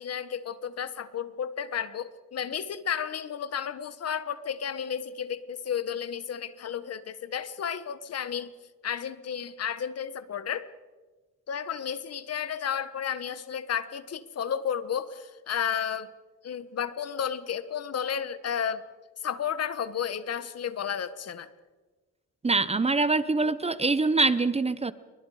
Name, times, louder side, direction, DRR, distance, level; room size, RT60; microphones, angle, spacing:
voice 1, 0.0-8.5 8.8-10.7 11.5-16.1 16.4-18.8 19.2-21.5, left 8 dB, 55° left, 13 dB, 1.5 m, -32 dB
voice 2, 22.4-24.9, right 3 dB, 20° right, 15 dB, 1.0 m, -24 dB
28.5 x 23.5 x 5.0 m, 1.3 s
cardioid pair, 90°, 30 cm